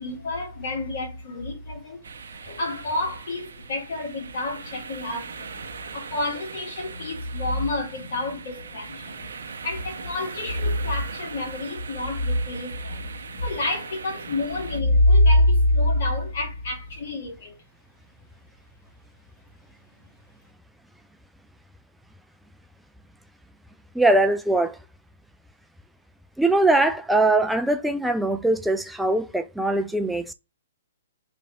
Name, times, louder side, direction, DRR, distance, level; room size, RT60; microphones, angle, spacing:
voice 1, 0.0-2.0 2.3-17.6, left 1 dB, 50° left, 1.4 m, -26 dB
sound 1, 2.0-14.8, right 5 dB, 60° right, 0.6 m, -40 dB
voice 2, 23.9-24.8 26.4-30.3, right 2 dB, ahead, 0.3 m, -21 dB
3.1 x 2.5 x 3.4 m
figure-of-eight pair, 120°, 0 cm